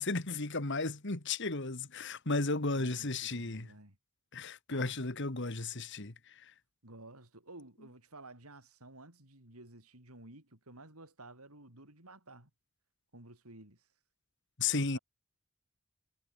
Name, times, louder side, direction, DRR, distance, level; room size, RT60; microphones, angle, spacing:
voice 1, 0.0-3.7 4.3-6.1 14.6-15.0, left 3 dB, 55° left, 2.0 m, -34 dB
voice 2, 2.7-4.0 4.7-5.0 6.8-12.5 13.1-13.9 14.8-15.0, right 2 dB, 80° right, 6.5 m, -53 dB
head